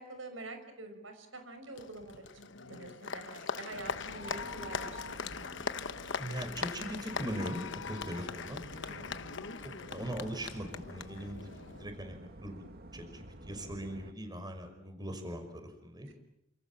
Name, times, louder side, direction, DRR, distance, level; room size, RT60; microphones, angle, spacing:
voice 1, 0.0-2.3 2.6-5.4 8.8-9.3 16.0-16.1, right 2 dB, 80° right, 7 dB, 5.9 m, -46 dB
Applause, 1.8-11.9, left 5 dB, 65° left, 1.1 m, -41 dB
sound 1, 3.7-14.1, right 1 dB, 55° right, 1.9 m, -51 dB
voice 2, 6.2-8.6 8.9-9.3 9.6-12.7 12.9-16.1, equal, 20° right, 7 dB, 5.6 m, -41 dB
29.0 x 27.5 x 7.4 m, 0.80 s
head